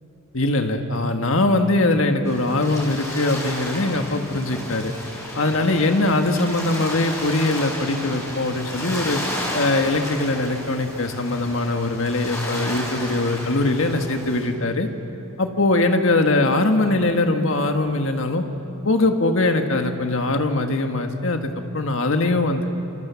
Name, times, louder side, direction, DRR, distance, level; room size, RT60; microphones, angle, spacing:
voice 1, 0.3-4.9 5.4-9.2 9.5-14.9 15.4-18.4 18.8-22.6, left 2 dB, 60° left, 5 dB, 1.7 m, -21 dB
sound 1, 2.3-14.4, left 1 dB, 15° left, 5.2 m, -32 dB
28.0 x 26.5 x 7.1 m, 2.9 s
head